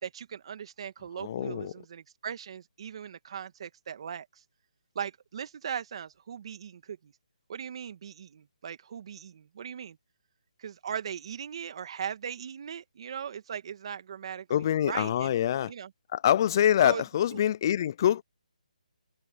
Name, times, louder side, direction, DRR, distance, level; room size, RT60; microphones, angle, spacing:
voice 1, 0.0-4.4 5.0-7.1 7.5-10.0 10.6-15.4 15.7-15.9 16.8-17.0 17.3-17.4, right 8 dB, 45° right, 2.0 m, -39 dB
voice 2, 1.2-1.7 14.5-15.7 16.1-18.2, left 10 dB, 30° left, 0.3 m, -25 dB
hypercardioid pair, 165°, 4 cm